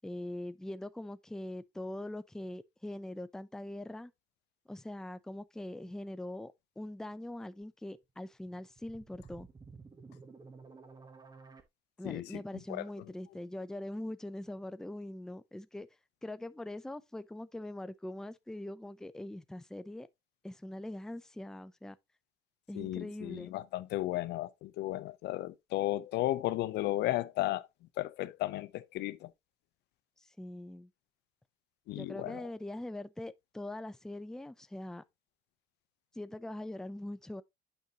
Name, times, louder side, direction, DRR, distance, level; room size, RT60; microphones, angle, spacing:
voice 1, 0.0-4.1 4.7-9.5 12.0-15.9 16.2-20.1 20.4-22.0 22.7-23.5 30.2-30.9 31.9-35.0 36.1-37.4, left 1 dB, 5° left, 0.5 m, -42 dB
sound 1, 8.3-11.6, right 4 dB, 25° right, 1.3 m, -53 dB
voice 2, 12.0-12.4 12.7-12.8 22.7-27.7 28.0-29.3 31.9-32.4, left 16 dB, 80° left, 0.6 m, -34 dB
9.0 x 5.3 x 2.9 m
cardioid pair, 110°, 17 cm